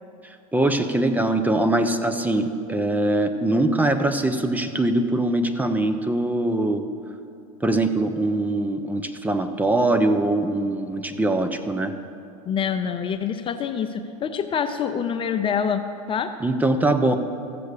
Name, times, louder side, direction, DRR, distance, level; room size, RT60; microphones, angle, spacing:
voice 1, 0.5-6.8 7.6-11.9 16.4-17.2, right 2 dB, 10° right, 7 dB, 0.8 m, -22 dB
voice 2, 12.5-16.3, left 7 dB, 30° left, 8 dB, 0.6 m, -26 dB
15.0 x 6.9 x 6.6 m, 2.6 s
hypercardioid pair, 95°, 18 cm